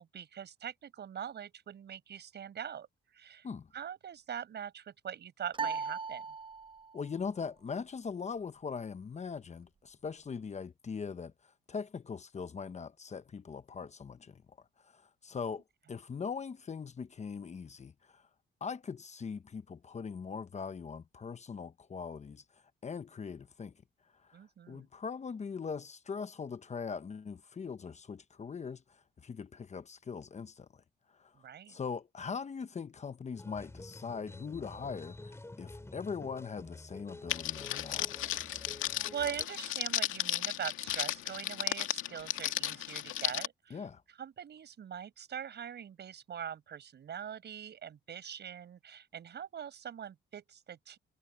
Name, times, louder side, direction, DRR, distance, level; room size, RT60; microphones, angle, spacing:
voice 1, 0.0-3.5 3.7-6.3 24.3-24.9 31.3-31.8 39.1-43.8 44.2-51.0, right 8 dB, 60° right, 5.7 m, -42 dB
sound 1, 5.5-7.0, right 4 dB, 25° right, 0.4 m, -38 dB
voice 2, 6.9-18.3 18.6-23.7 24.1-24.4 24.7-30.8 31.1-31.4 31.7-38.4 43.7-44.0, left 5 dB, 35° left, 1.1 m, -41 dB
sound 2, 33.3-39.4, left 2 dB, 15° left, 4.9 m, -49 dB
Crackle, 37.3-43.5, left 13 dB, 90° left, 2.1 m, -35 dB
cardioid pair, 90°, 20 cm